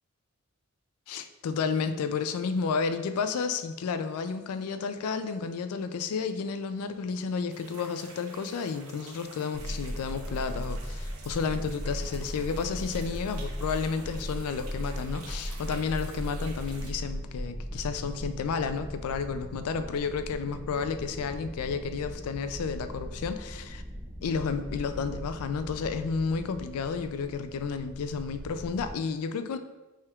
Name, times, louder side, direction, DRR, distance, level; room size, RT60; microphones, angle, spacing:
voice 1, 1.1-23.8 24.2-29.6, left 5 dB, 85° left, 10 dB, 0.3 m, -31 dB
sound 1, 7.5-16.9, right 4 dB, 85° right, 0.7 m, -49 dB
sound 2, 9.5-28.9, equal, 5° right, 1.5 m, -38 dB
5.6 x 3.4 x 2.3 m, 1.1 s
head